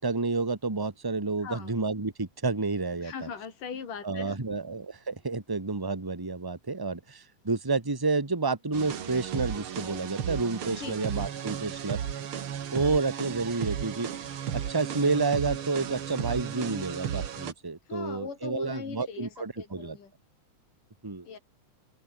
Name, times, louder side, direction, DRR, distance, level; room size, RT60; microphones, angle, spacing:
voice 1, 0.0-3.3 4.0-12.0 12.7-20.0 21.0-21.3, right 3 dB, 10° right, 1.5 m, -30 dB
voice 2, 1.4-1.7 3.0-4.4 10.8-11.0 12.7-12.9 17.9-20.1 21.3-21.4, left 6 dB, 80° left, 5.2 m, -40 dB
sound 1, 8.7-17.5, right 9 dB, 50° right, 2.0 m, -34 dB
omnidirectional pair, 3.7 m